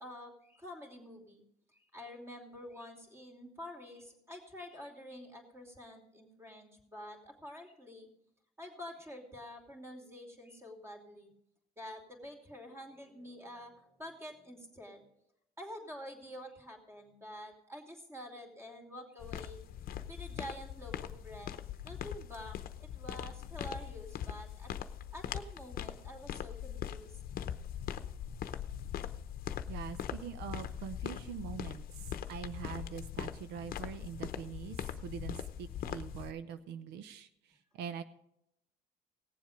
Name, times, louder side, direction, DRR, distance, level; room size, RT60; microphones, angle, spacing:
voice 1, 0.0-1.4 1.7-8.1 8.6-11.3 11.8-15.0 15.6-19.6 20.1-21.5 21.8-24.7 25.1-27.2, equal, 15° right, 2 dB, 2.8 m, -48 dB
sound 1, 19.2-36.3, left 10 dB, 60° left, 0.8 m, -41 dB
voice 2, 29.7-31.8 32.3-34.8 35.0-37.3 37.8-38.0, right 8 dB, 85° right, 11 dB, 0.7 m, -43 dB
18.0 x 7.4 x 5.0 m, 0.81 s
cardioid pair, 110°, 17 cm